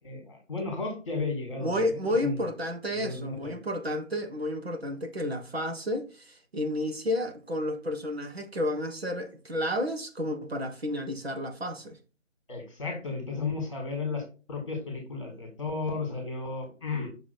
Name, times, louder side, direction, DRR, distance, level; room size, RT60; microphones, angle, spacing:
voice 1, 0.0-2.4 2.9-3.5 12.5-14.2 14.5-17.1, left 4 dB, 25° left, 2.0 m, -34 dB
voice 2, 1.6-11.9, left 1 dB, 50° right, 1.4 m, -31 dB
6.1 x 3.5 x 4.5 m
figure-of-eight pair, 165°, 39 cm